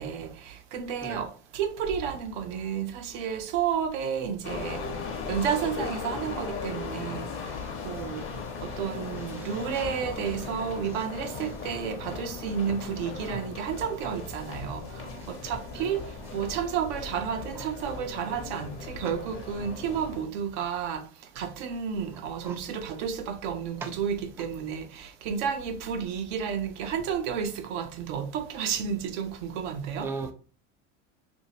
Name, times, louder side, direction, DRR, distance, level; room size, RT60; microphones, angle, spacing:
voice 1, 0.0-4.8 5.3-7.5 7.8-8.2 8.6-21.1 21.3-30.1, right 7 dB, 75° right, 0.7 m, -31 dB
sound 1, 4.4-13.5, left 11 dB, 75° left, 0.5 m, -43 dB
sound 2, 4.4-20.2, left 4 dB, 35° left, 0.8 m, -38 dB
voice 2, 9.3-9.8 15.1-15.3 15.7-15.9 17.6-17.7 19.0-19.1 22.4-22.6 23.8-23.9 30.0-30.3, right 4 dB, 5° right, 0.3 m, -38 dB
2.8 x 2.7 x 2.9 m
supercardioid pair, 95°, 36 cm